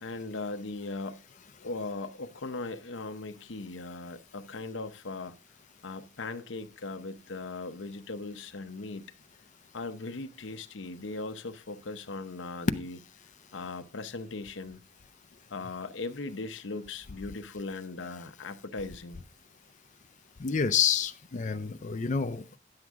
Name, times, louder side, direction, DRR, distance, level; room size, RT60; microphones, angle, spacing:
voice 1, 0.0-1.2 1.6-5.4 5.8-9.1 9.7-13.0 13.5-14.8 15.5-19.2, left 3 dB, 90° left, 0.8 m, -38 dB
voice 2, 20.4-22.6, left 7 dB, 40° left, 0.5 m, -28 dB
10.5 x 7.7 x 3.6 m
head